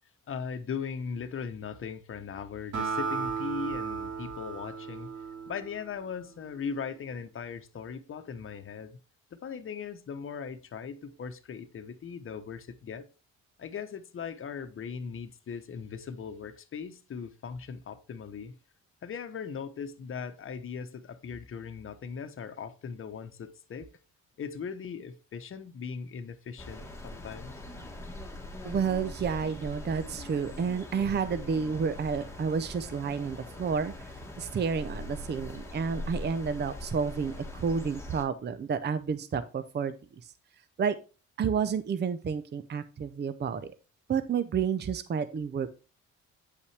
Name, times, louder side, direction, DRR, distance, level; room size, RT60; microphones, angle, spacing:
voice 1, 0.3-5.1 5.5-9.0 9.3-13.1 13.6-18.6 19.0-23.9 24.4-27.5, left 6 dB, 45° left, 1.0 m, -39 dB
Acoustic guitar, 2.7-6.3, right 5 dB, 90° right, 2.3 m, -35 dB
sound 1, 26.6-38.2, left 1 dB, 10° left, 1.4 m, -42 dB
voice 2, 28.6-34.1 34.4-39.9 40.8-40.9 41.4-43.6 44.1-45.8, right 6 dB, 35° right, 0.6 m, -30 dB
8.3 x 5.5 x 3.3 m
cardioid pair, 90°, 30 cm